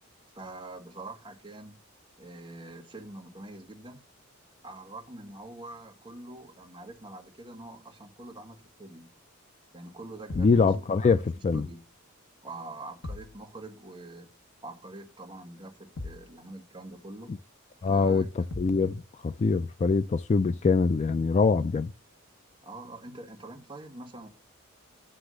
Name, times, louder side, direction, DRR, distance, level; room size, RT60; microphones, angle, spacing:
voice 1, 0.3-1.8 2.2-4.0 4.6-9.1 9.7-11.2 11.5-11.8 12.4-14.3 14.6-17.4 17.8-18.6 22.6-24.3, right 2 dB, 20° right, 1.5 m, -45 dB
sound 1, 10.3-10.7 13.0-13.4 16.0-16.3 18.5-18.9, left 2 dB, 65° left, 1.1 m, -39 dB
voice 2, 10.4-11.7 17.3-17.4 17.8-21.9, left 4 dB, 30° left, 0.3 m, -24 dB
9.8 x 3.5 x 6.2 m
head